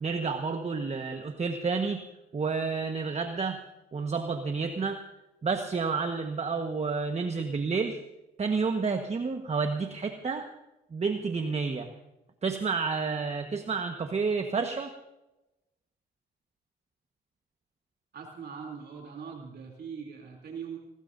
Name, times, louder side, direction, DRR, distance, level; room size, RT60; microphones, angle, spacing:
voice 1, 0.0-2.0 2.3-3.6 3.9-5.0 5.4-8.0 8.4-10.5 10.9-11.9 12.4-14.9, right 4 dB, 35° right, 5 dB, 1.3 m, -30 dB
voice 2, 18.1-20.8, right 6 dB, 55° right, 1 dB, 3.1 m, -41 dB
20.5 x 19.5 x 2.7 m, 0.96 s
cardioid pair, 90°, 20 cm